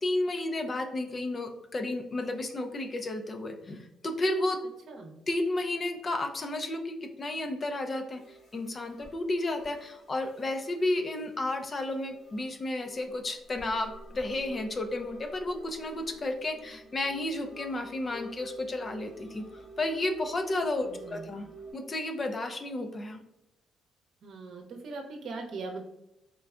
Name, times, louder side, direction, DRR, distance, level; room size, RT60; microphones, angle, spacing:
voice 1, 0.0-4.6 5.3-19.4 19.8-21.5 21.7-23.2, left 2 dB, 35° left, 6 dB, 0.5 m, -32 dB
voice 2, 4.9-5.2 20.8-21.2 24.2-25.8, right 3 dB, 65° right, 2 dB, 0.7 m, -40 dB
sound 1, 8.1-21.7, right 1 dB, 75° left, 1.3 m, -50 dB
3.8 x 3.2 x 2.4 m, 0.88 s
cardioid pair, 90°, 0 cm